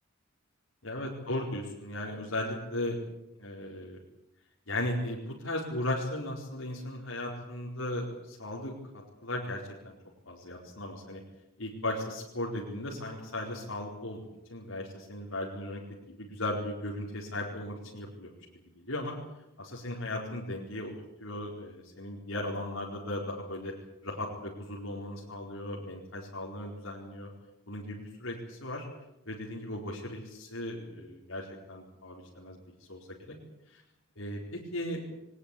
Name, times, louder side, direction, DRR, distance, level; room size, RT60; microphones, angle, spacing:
voice 1, 0.8-3.0 3.4-4.0 4.7-8.7 9.2-9.9 10.3-11.2 11.6-18.4 18.8-19.2 19.6-20.9 21.2-23.7 24.0-27.3 27.7-28.9 29.3-32.6 32.9-33.4 33.7-33.8 34.2-35.0, left 1 dB, 75° left, -3 dB, 4.5 m, -36 dB
22.5 x 19.0 x 8.6 m, 0.89 s
head